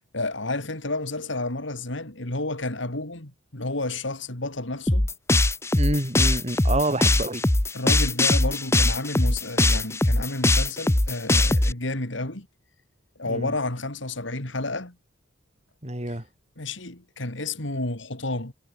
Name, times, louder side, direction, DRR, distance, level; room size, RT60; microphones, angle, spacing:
voice 1, 0.1-5.1 7.7-12.5 13.2-15.0 16.1-16.2 16.6-18.5, left 2 dB, 60° left, 3.2 m, -31 dB
sound 1, 4.9-11.7, left 2 dB, 15° left, 0.7 m, -21 dB
voice 2, 5.7-7.4 13.3-13.5 15.8-16.2, right 1 dB, 35° right, 4.7 m, -27 dB
head